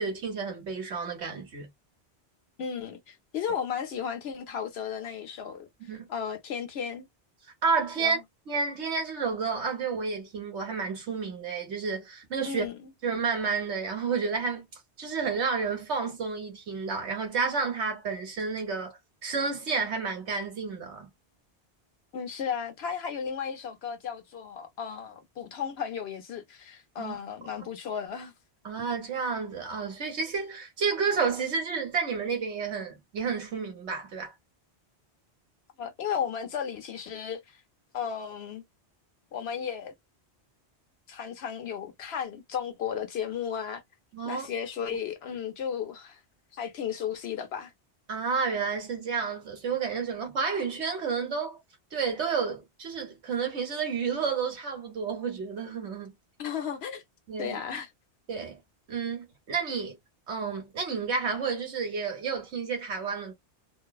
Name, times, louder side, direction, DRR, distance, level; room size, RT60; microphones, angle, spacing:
voice 1, 0.0-1.7 5.9-6.0 7.6-8.2 8.5-12.6 13.0-14.7 15.0-21.1 27.0-27.2 28.6-34.3 44.1-44.5 48.1-51.6 51.9-56.2 57.3-57.6 58.3-58.6 58.9-60.0 60.3-63.3, right 5 dB, 90° right, 1.4 m, -30 dB
voice 2, 2.6-5.7 6.1-7.1 8.0-8.2 12.5-12.8 22.1-28.3 35.8-37.6 37.9-38.6 39.3-39.9 41.1-43.8 44.3-46.2 46.5-47.7 56.4-57.0 57.4-57.9, left 7 dB, 70° left, 1.0 m, -34 dB
3.1 x 2.0 x 2.3 m
omnidirectional pair, 1.1 m